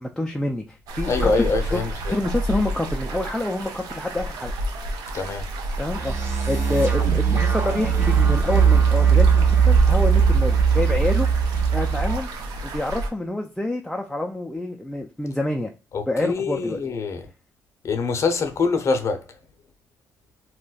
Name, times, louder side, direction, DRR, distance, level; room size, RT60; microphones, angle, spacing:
voice 1, 0.0-1.3 1.7-4.5 5.8-11.3 11.7-12.3 12.6-15.7 16.1-16.8, left 2 dB, 5° left, 0.3 m, -27 dB
sound 1, 0.9-13.1, right 1 dB, 75° right, 0.6 m, -29 dB
voice 2, 1.0-2.2 5.1-5.5 15.9-17.3 17.8-19.2, left 4 dB, 45° left, 0.6 m, -24 dB
sound 2, 5.9-12.1, right 7 dB, 35° right, 1.0 m, -19 dB
2.3 x 2.1 x 3.9 m
cardioid pair, 85°, 7 cm